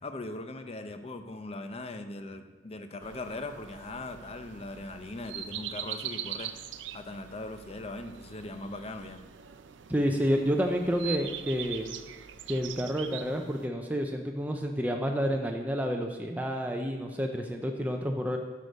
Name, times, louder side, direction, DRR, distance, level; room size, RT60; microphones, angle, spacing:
voice 1, 0.0-6.5 6.9-9.2, left 2 dB, 35° left, 8 dB, 0.6 m, -40 dB
sound 1, 3.0-13.7, right 10 dB, 80° right, 0.5 m, -42 dB
voice 2, 9.9-11.9 12.5-18.4, equal, 10° right, 2 dB, 0.5 m, -29 dB
8.1 x 6.6 x 5.3 m, 1.3 s
head